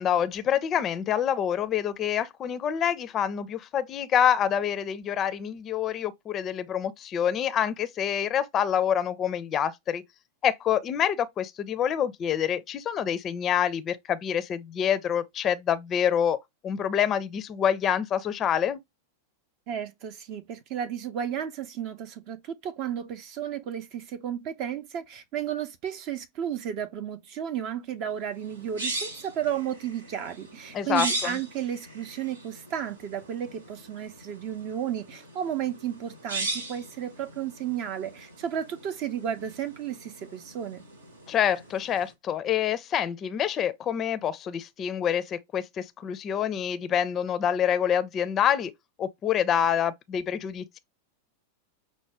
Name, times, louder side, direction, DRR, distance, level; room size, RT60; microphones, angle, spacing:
voice 1, 0.0-10.0 10.4-18.8 30.7-31.4 41.3-48.7 49.0-50.8, left 9 dB, 30° left, 0.5 m, -27 dB
voice 2, 19.7-40.8, right 9 dB, 40° right, 0.5 m, -33 dB
sound 1, 28.3-42.1, right 2 dB, 70° right, 0.9 m, -39 dB
5.9 x 2.1 x 3.3 m
figure-of-eight pair, 90°, 0 cm